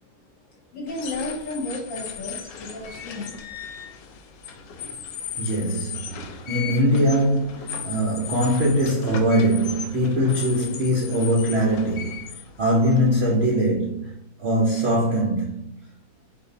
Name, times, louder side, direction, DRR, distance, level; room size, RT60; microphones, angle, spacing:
voice 1, 0.5-3.3, left 2 dB, 55° left, 1.1 m, -33 dB
sound 1, 0.9-13.6, left 7 dB, 75° left, 1.2 m, -37 dB
voice 2, 5.4-12.2 12.6-14.1 14.4-15.6, equal, 60° right, 0.6 m, -22 dB
4.6 x 2.6 x 4.0 m
omnidirectional pair, 2.0 m